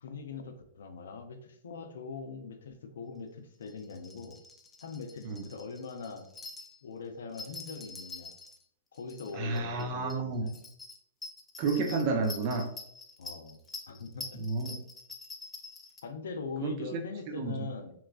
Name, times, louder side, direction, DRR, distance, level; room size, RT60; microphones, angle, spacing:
voice 1, 0.0-4.4 4.8-6.3 6.8-8.3 8.9-10.5 13.2-13.6 13.9-14.2 14.7-14.8 16.0-17.9, left 4 dB, 80° left, 6 dB, 0.4 m, -42 dB
sound 1, 3.6-6.8 7.3-8.6 8.9-9.8 10.1-10.2 10.5-16.0, left 3 dB, 15° left, 0.4 m, -46 dB
voice 2, 9.3-10.5 11.6-12.7 14.4-14.8 16.6-17.0 17.3-17.7, right 3 dB, 45° right, 5 dB, 0.5 m, -31 dB
3.0 x 2.2 x 2.3 m, 0.68 s
hypercardioid pair, 125°, 0 cm